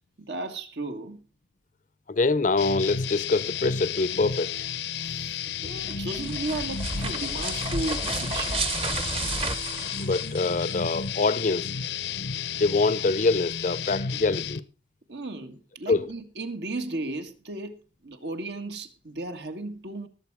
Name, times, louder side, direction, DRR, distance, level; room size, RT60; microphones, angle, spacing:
voice 1, 0.3-1.2 5.0-8.8 15.1-17.8 18.0-20.1, right 2 dB, 75° right, 1.7 m, -35 dB
voice 2, 2.1-4.5 5.6-5.7 10.0-11.7 12.6-14.6 15.9-16.1, left 3 dB, 45° left, 0.6 m, -25 dB
sound 1, 2.6-14.6, left 7 dB, 75° left, 0.8 m, -32 dB
sound 2, 5.8-10.7, right 3 dB, 30° right, 1.0 m, -32 dB
19.5 x 7.7 x 4.8 m
head